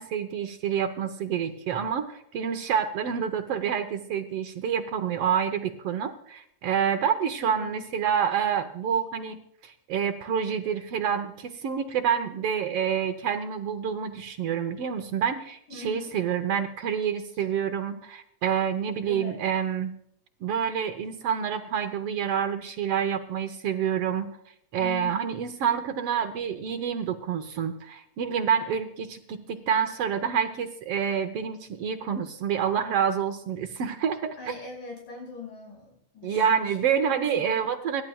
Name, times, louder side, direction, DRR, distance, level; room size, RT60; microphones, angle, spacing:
voice 1, 0.0-19.9 20.4-24.3 24.7-34.5 36.2-38.0, right 8 dB, 70° right, 8 dB, 1.4 m, -28 dB
voice 2, 7.4-7.8 15.7-16.1 17.3-17.4 19.1-19.4 24.8-25.3 34.4-36.8 37.0-37.6, left 5 dB, 80° left, 0 dB, 7.1 m, -41 dB
26.5 x 12.0 x 2.3 m, 0.70 s
omnidirectional pair, 3.7 m